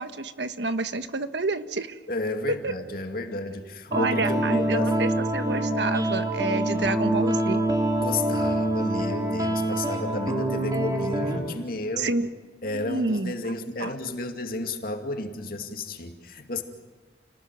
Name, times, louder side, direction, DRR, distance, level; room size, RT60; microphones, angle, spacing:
voice 1, 0.0-2.0 2.6-2.7 3.9-7.6 12.0-12.3 12.7-13.3 13.8-13.9, right 3 dB, 85° right, 10 dB, 1.5 m, -29 dB
voice 2, 2.1-4.9 8.0-12.1 12.6-16.6, left 2 dB, 55° left, 5 dB, 2.5 m, -32 dB
sound 1, 3.9-11.4, right 1 dB, 20° right, 5.0 m, -25 dB
30.0 x 20.0 x 9.3 m, 1.3 s
head